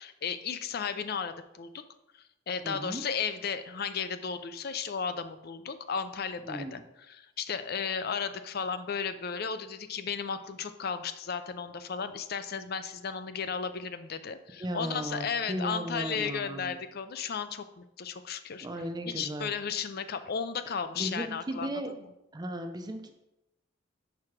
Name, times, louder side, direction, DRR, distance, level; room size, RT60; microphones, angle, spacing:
voice 1, 0.0-1.8 2.5-6.8 7.1-18.7 19.1-21.7, left 6 dB, 50° left, 11 dB, 0.4 m, -34 dB
voice 2, 2.6-3.0 6.5-6.8 14.6-16.7 18.6-19.5 21.0-21.9 22.3-23.1, right 1 dB, 20° right, 6 dB, 0.5 m, -36 dB
4.9 x 4.7 x 5.9 m, 0.92 s
head